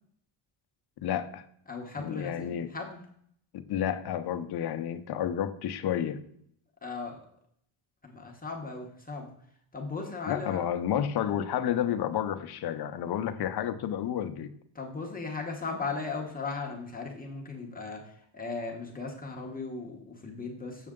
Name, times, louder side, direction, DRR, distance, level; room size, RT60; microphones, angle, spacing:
voice 1, 1.0-1.4 2.0-2.7 3.5-6.2 10.3-14.5, left 9 dB, 50° left, 9 dB, 0.7 m, -31 dB
voice 2, 1.7-3.0 6.8-7.2 8.0-9.3 9.7-10.6 14.7-20.9, left 4 dB, 15° left, 0 dB, 0.9 m, -37 dB
7.6 x 6.4 x 3.6 m, 0.68 s
cardioid pair, 165°, 50 cm